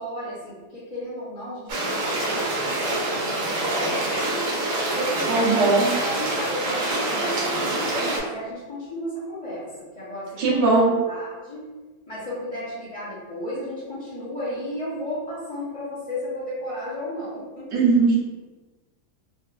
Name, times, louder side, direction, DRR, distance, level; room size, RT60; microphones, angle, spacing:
voice 1, 0.0-2.4 2.8-4.4 4.9-5.7 6.0-11.7 12.1-17.7, equal, 30° left, -11 dB, 0.6 m, -34 dB
sound 1, 1.7-8.2, right 2 dB, 60° right, 1.1 m, -26 dB
voice 2, 5.3-5.9 10.4-10.9 17.7-18.2, right 3 dB, 85° right, -6 dB, 1.6 m, -19 dB
4.2 x 2.4 x 2.4 m, 1.3 s
omnidirectional pair, 1.8 m